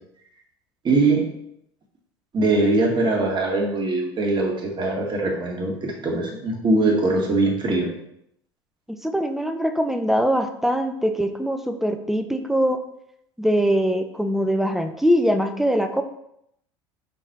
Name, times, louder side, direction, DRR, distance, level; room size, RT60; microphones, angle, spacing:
voice 1, 0.8-1.3 2.3-7.9, right 2 dB, 35° right, 0 dB, 2.0 m, -22 dB
voice 2, 9.0-12.8 13.4-16.0, equal, ahead, 7 dB, 0.8 m, -22 dB
5.9 x 4.4 x 4.6 m, 0.75 s
hypercardioid pair, 70°, 14 cm